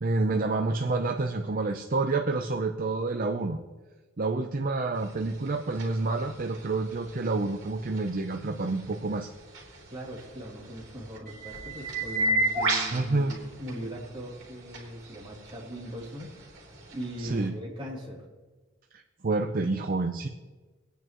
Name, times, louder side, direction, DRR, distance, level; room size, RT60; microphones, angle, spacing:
voice 1, 0.0-3.6 4.2-9.3 12.9-13.3 17.2-17.5 18.9-20.3, right 3 dB, 45° right, 5 dB, 0.6 m, -28 dB
sound 1, 5.0-17.5, right 2 dB, 65° right, 3.2 m, -35 dB
voice 2, 9.9-16.3 16.9-18.2, equal, 25° right, -4 dB, 3.0 m, -40 dB
22.5 x 9.2 x 3.0 m, 1.3 s
head